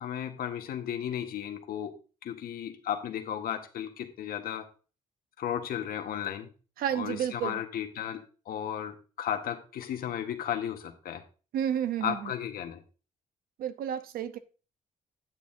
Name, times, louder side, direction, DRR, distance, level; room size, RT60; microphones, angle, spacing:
voice 1, 0.0-1.9 2.2-4.7 5.4-6.5 6.9-11.2 12.0-12.8, left 9 dB, 80° left, 1.3 m, -34 dB
voice 2, 6.8-7.6 11.5-12.3 13.6-14.4, right 9 dB, 85° right, 0.8 m, -31 dB
9.2 x 8.5 x 2.7 m
cardioid pair, 100°, 15 cm